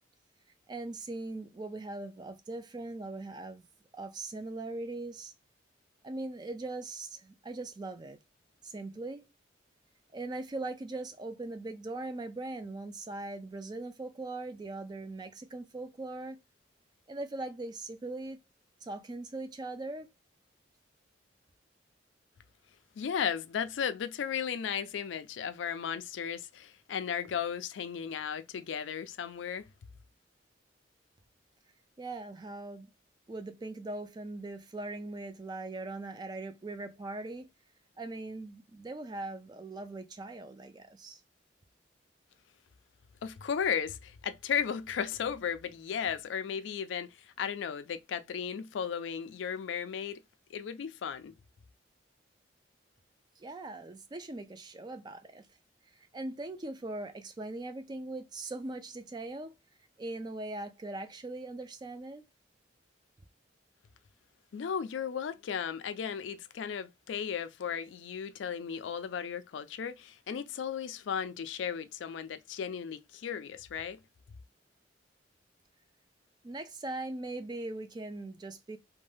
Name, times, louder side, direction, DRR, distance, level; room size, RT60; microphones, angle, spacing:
voice 1, 0.7-3.7 3.9-5.3 6.0-8.2 8.6-9.3 10.1-16.4 17.1-18.4 18.8-20.1 32.0-32.9 33.3-37.5 38.0-41.2 53.4-55.5 55.9-59.5 60.0-62.2 76.4-78.8, right 2 dB, 20° right, 0.3 m, -40 dB
voice 2, 23.0-29.7 43.2-50.2 50.5-51.3 64.5-74.0, left 7 dB, 75° left, 0.3 m, -35 dB
2.6 x 2.1 x 3.3 m
head